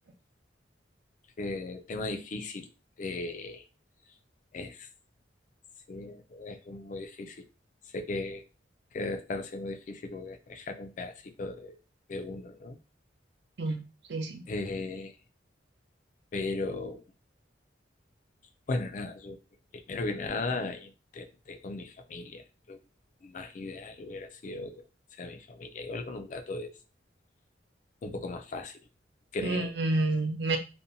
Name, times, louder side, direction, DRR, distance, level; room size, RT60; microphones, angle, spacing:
voice 1, 1.4-2.7 3.0-3.7 4.5-4.9 5.9-7.4 7.9-8.4 8.9-11.8 12.1-12.8 14.5-15.1 16.3-17.0 18.7-19.4 19.7-22.8 23.2-24.8 25.2-26.7 28.0-28.8 29.3-29.7, left 3 dB, 40° left, 6 dB, 0.3 m, -37 dB
voice 2, 14.1-14.4 29.4-30.6, right 2 dB, 65° right, 5 dB, 0.5 m, -29 dB
2.5 x 2.1 x 2.7 m, 0.31 s
head